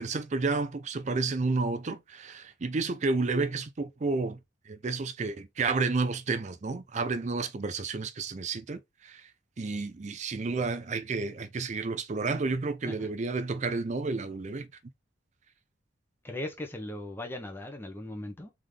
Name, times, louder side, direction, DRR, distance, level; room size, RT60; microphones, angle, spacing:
voice 1, 0.0-4.4 4.7-9.3 9.6-14.7, right 3 dB, 40° right, 0.4 m, -31 dB
voice 2, 16.2-18.5, left 1 dB, 10° left, 0.8 m, -38 dB
3.7 x 3.6 x 3.2 m
head